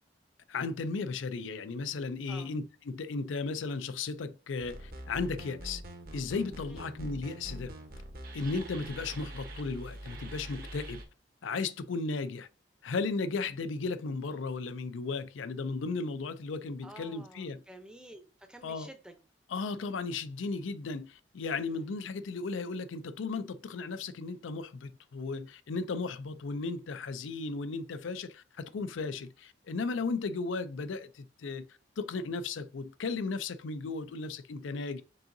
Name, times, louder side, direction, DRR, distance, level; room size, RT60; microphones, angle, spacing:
voice 1, 0.5-5.8 6.1-7.7 8.3-11.0 11.4-12.5 12.8-17.6 18.6-18.9 19.5-31.7 32.0-35.0, left 4 dB, 90° left, 0.4 m, -35 dB
sound 1, 4.6-11.0, right 1 dB, 50° right, 0.9 m, -44 dB
voice 2, 16.8-19.1 21.7-21.9, right 1 dB, 5° right, 0.6 m, -51 dB
5.5 x 3.7 x 2.6 m
head